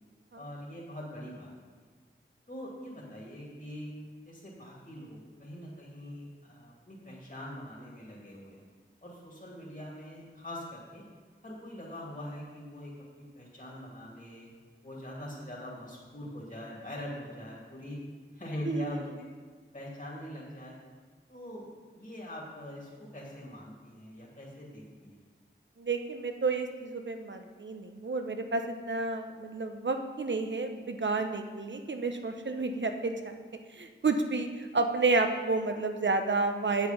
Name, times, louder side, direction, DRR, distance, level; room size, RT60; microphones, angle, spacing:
voice 1, 0.3-1.5 2.5-3.9 4.2-8.6 9.0-11.0 11.4-14.5 14.8-18.0 18.3-19.3 19.7-20.8 21.3-25.2, equal, 40° left, -4 dB, 2.5 m, -43 dB
voice 2, 18.7-19.0 25.8-33.4 33.8-36.9, right 3 dB, 65° right, 6 dB, 0.9 m, -30 dB
8.3 x 8.0 x 5.4 m, 1.5 s
wide cardioid pair, 55°, 20 cm